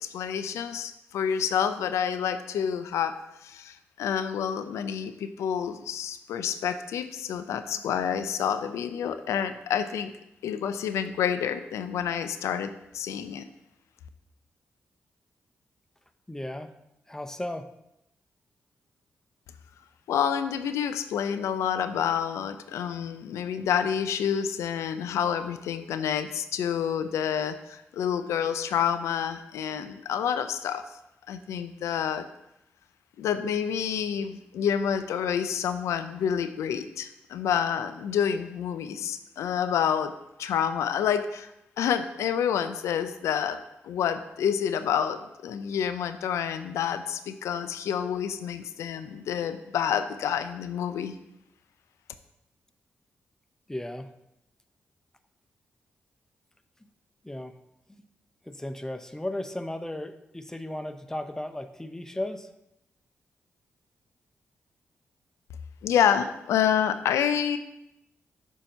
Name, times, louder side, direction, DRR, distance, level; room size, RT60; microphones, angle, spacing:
voice 1, 0.0-3.1 3.4-10.1 10.4-13.4 20.1-30.8 31.3-32.2 33.2-40.1 40.4-41.5 41.8-51.2 65.8-67.6, left 8 dB, 85° left, 10 dB, 0.4 m, -28 dB
voice 2, 16.3-16.7 17.1-17.7 53.7-54.1 56.8-56.9 57.2-57.5 57.9-58.0 58.5-62.5, left 1 dB, 10° left, 9 dB, 0.6 m, -35 dB
7.2 x 2.7 x 5.4 m, 0.86 s
supercardioid pair, 45°, 5 cm